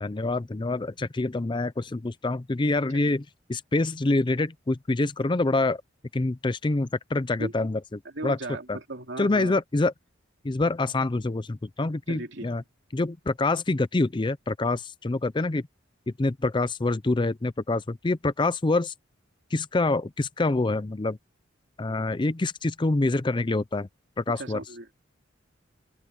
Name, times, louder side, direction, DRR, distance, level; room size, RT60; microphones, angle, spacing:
voice 1, 0.0-5.8 6.1-8.4 8.7-8.8 9.2-9.9 10.4-12.6 12.9-15.7 16.2-18.9 19.5-21.2 21.8-23.9 24.2-24.6, left 2 dB, 25° left, 0.5 m, -26 dB
voice 2, 8.1-9.6 12.1-12.5 24.4-24.9, right 2 dB, 65° right, 2.9 m, -36 dB
head